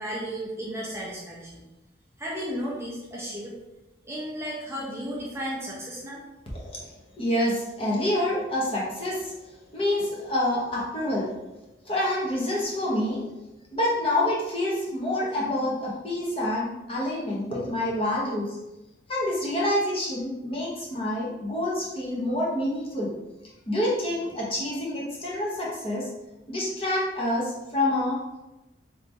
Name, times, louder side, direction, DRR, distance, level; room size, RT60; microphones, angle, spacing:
voice 1, 0.0-1.6 2.2-3.5 4.0-6.2, equal, 15° right, -5 dB, 0.6 m, -34 dB
voice 2, 7.2-9.3 9.7-11.3 11.8-13.3 13.7-18.6 19.1-23.1 23.7-26.0 26.5-28.4, left 1 dB, 30° left, -5 dB, 0.8 m, -27 dB
3.3 x 2.9 x 2.7 m, 0.97 s
head